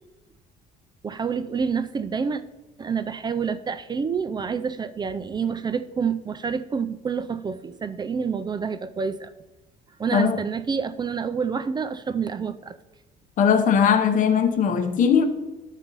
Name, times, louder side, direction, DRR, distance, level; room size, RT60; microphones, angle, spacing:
voice 1, 1.0-2.4 2.8-9.3 10.0-12.8, right 6 dB, 25° right, 0.4 m, -28 dB
voice 2, 13.4-15.2, left 7 dB, 50° left, 0.8 m, -19 dB
11.5 x 4.1 x 5.3 m
cardioid pair, 110°, 17 cm